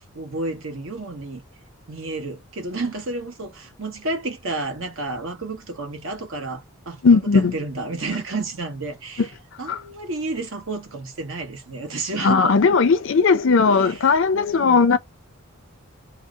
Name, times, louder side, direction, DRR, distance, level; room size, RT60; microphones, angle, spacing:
voice 1, 0.0-1.4 1.9-7.0 7.3-9.3 9.6-12.6 13.7-14.0 14.3-14.9, right 3 dB, 65° right, 1.0 m, -31 dB
voice 2, 7.0-7.5 9.7-9.8 12.2-15.0, left 4 dB, 60° left, 0.5 m, -17 dB
2.7 x 2.0 x 3.5 m
head